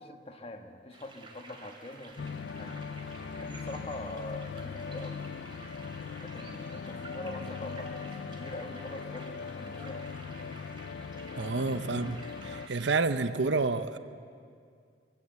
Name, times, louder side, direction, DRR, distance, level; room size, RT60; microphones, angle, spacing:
voice 1, 0.0-2.8 3.4-5.2 6.2-10.0 11.4-11.8, left 1 dB, 30° left, 5 dB, 1.4 m, -44 dB
sound 1, 0.9-13.0, right 3 dB, 30° right, 2.6 m, -51 dB
sound 2, 2.2-12.7, left 5 dB, 65° left, 0.4 m, -40 dB
sound 3, 6.9-10.1 11.5-11.6, left 1 dB, 10° right, 6.0 m, -52 dB
voice 2, 11.4-12.2 12.4-14.0, right 3 dB, 75° right, 12 dB, 0.8 m, -29 dB
22.0 x 16.0 x 8.0 m, 2.3 s
head